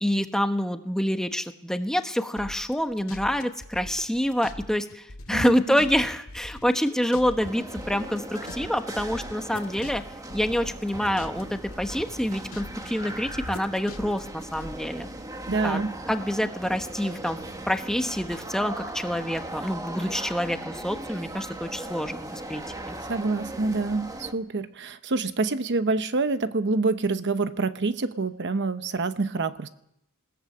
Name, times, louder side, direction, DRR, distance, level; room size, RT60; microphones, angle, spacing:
voice 1, 0.0-10.0 10.3-15.1 15.6-15.8 16.1-17.4 17.7-22.9, equal, 5° left, 7 dB, 1.2 m, -27 dB
sound 1, 2.4-4.6 4.9-7.5 7.8-11.4 11.7-12.9 13.3-14.7, left 1 dB, 70° left, 1.9 m, -41 dB
voice 2, 5.3-5.8 15.5-15.9 23.1-29.7, right 3 dB, 55° right, 11 dB, 0.9 m, -27 dB
sound 2, 7.4-24.3, right 1 dB, 15° right, 1.5 m, -38 dB
20.5 x 17.0 x 8.5 m, 0.79 s
head